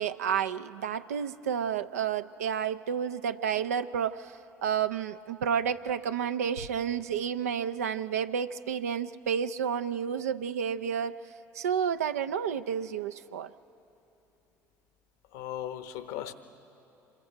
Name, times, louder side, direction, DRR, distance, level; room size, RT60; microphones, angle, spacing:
voice 1, 0.0-4.3 4.6-11.2 11.6-13.5, right 8 dB, 90° right, 10 dB, 0.4 m, -30 dB
voice 2, 15.3-16.3, left 11 dB, 75° left, 10 dB, 0.9 m, -37 dB
26.5 x 22.0 x 4.6 m, 3.0 s
hypercardioid pair, 60°, 8 cm